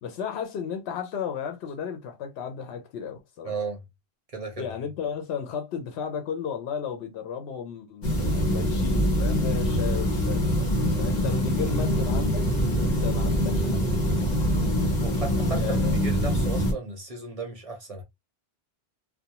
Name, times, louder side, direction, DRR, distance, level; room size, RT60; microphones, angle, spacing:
voice 1, 0.0-3.6 4.6-10.7 10.9-12.5 12.8-13.8 15.5-16.0, left 7 dB, 80° left, 0.8 m, -34 dB
voice 2, 3.4-3.8 4.3-4.7 15.0-18.0, right 4 dB, 40° right, 0.6 m, -35 dB
sound 1, 8.0-16.7, equal, 45° left, 0.9 m, -24 dB
2.4 x 2.1 x 2.8 m
omnidirectional pair, 1.1 m